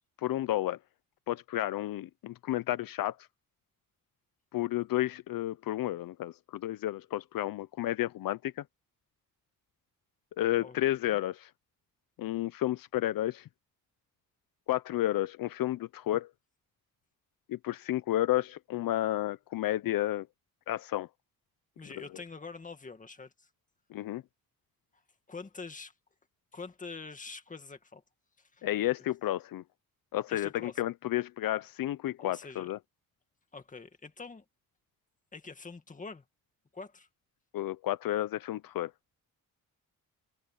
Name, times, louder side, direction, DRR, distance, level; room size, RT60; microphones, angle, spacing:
voice 1, 0.2-0.8 1.3-3.2 4.5-8.6 10.4-11.5 12.2-13.5 14.7-16.3 17.5-20.3 20.7-21.1 23.9-24.2 28.6-29.6 30.1-32.8 37.5-38.9, left 14 dB, 75° left, 0.6 m, -31 dB
voice 2, 21.8-23.5 25.3-25.9 26.5-28.0 28.4-28.7 30.3-30.8 32.2-32.7 33.5-34.4 35.3-36.2 36.7-37.1, left 4 dB, 20° left, 2.0 m, -45 dB
wide cardioid pair, 170°, 35 cm